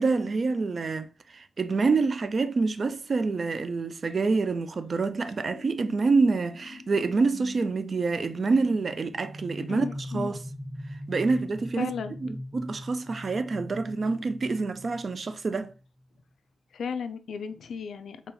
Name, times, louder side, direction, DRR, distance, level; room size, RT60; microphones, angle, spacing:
voice 1, 0.0-10.4 11.1-11.9 12.2-15.7, right 4 dB, 40° right, 0.3 m, -27 dB
sound 1, 5.5-15.8, left 1 dB, 15° left, 1.3 m, -41 dB
voice 2, 9.7-10.3 11.8-12.1 16.7-18.2, left 6 dB, 70° left, 0.4 m, -34 dB
4.1 x 2.2 x 3.8 m
wide cardioid pair, 145°, 0 cm